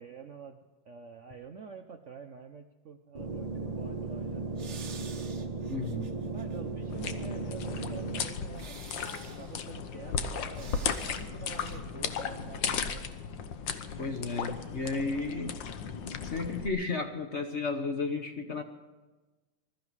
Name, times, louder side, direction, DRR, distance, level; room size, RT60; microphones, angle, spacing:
voice 1, 0.0-4.8 6.3-8.7 9.2-13.1, right 5 dB, 75° right, 6 dB, 0.6 m, -47 dB
sound 1, 3.1-8.2, right 3 dB, 20° right, 1.1 m, -36 dB
sound 2, 4.6-6.6 7.0-7.1 8.5-9.6 10.5-11.3 11.5-11.8, right 5 dB, 40° right, 1.2 m, -49 dB
voice 2, 5.7-6.1 14.0-15.6 16.2-18.6, left 3 dB, 40° left, 5 dB, 1.1 m, -33 dB
sound 3, 6.9-16.7, left 6 dB, 65° left, 1.6 m, -36 dB
21.0 x 13.0 x 4.8 m, 1.2 s
omnidirectional pair, 2.3 m